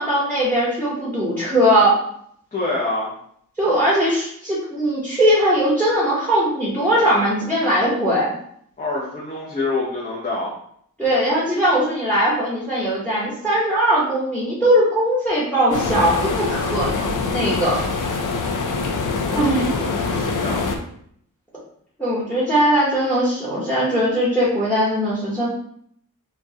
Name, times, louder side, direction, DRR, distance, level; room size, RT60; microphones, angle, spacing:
voice 1, 0.0-2.0 3.6-8.3 11.0-17.8 19.3-19.8 22.0-25.5, equal, 5° left, -6 dB, 1.1 m, -20 dB
voice 2, 2.5-3.1 8.8-10.5 19.2-20.6, left 2 dB, 25° left, -6 dB, 0.8 m, -26 dB
sound 1, 15.7-20.8, left 4 dB, 70° left, 0.6 m, -24 dB
5.1 x 2.4 x 2.8 m, 0.66 s
wide cardioid pair, 120°, 32 cm